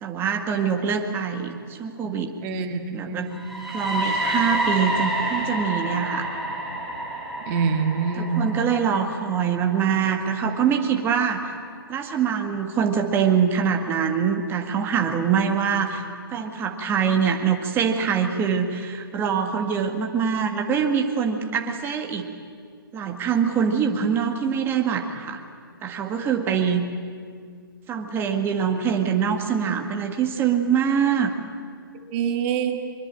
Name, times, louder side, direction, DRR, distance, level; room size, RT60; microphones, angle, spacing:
voice 1, 0.0-2.3 2.9-3.3 3.7-6.3 8.2-11.5 11.9-16.0 16.3-22.3 22.9-25.4 25.8-26.9 27.9-31.3, right 7 dB, 20° right, 3 dB, 1.9 m, -24 dB
voice 2, 2.4-3.4 7.5-8.5 32.1-32.8, right 6 dB, 35° right, 5 dB, 2.6 m, -25 dB
sound 1, 3.3-11.2, right 1 dB, ahead, 4.4 m, -29 dB
23.0 x 22.5 x 8.8 m, 2.1 s
hypercardioid pair, 135°, 12 cm